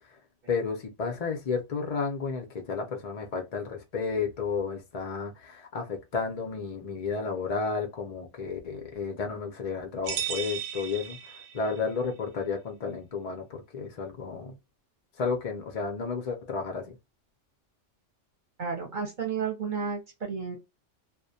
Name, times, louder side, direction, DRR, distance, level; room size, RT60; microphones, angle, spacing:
voice 1, 0.5-14.6 15.2-17.0, left 5 dB, 60° left, 0.4 m, -32 dB
sound 1, 10.0-11.9, right 9 dB, 85° right, 1.0 m, -35 dB
voice 2, 18.6-20.6, right 6 dB, 45° right, 0.8 m, -32 dB
2.4 x 2.1 x 2.6 m
omnidirectional pair, 1.3 m